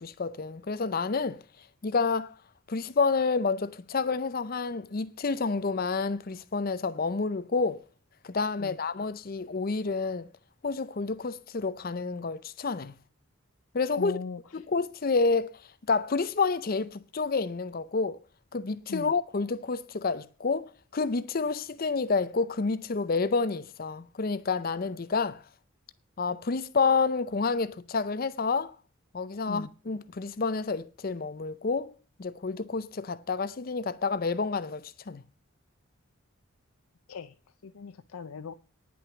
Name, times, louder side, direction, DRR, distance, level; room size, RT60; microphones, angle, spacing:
voice 1, 0.0-1.4 1.8-2.3 2.7-7.8 8.2-10.3 10.6-12.9 13.7-14.2 14.5-15.5 15.9-18.2 18.5-25.4 26.2-28.7 29.1-31.9 32.2-35.2, left 4 dB, 45° left, 0.5 m, -29 dB
voice 2, 13.9-14.4 18.9-19.1 29.5-29.7 37.1-37.3 37.6-38.5, left 5 dB, 90° left, 0.5 m, -38 dB
10.0 x 6.1 x 8.1 m
head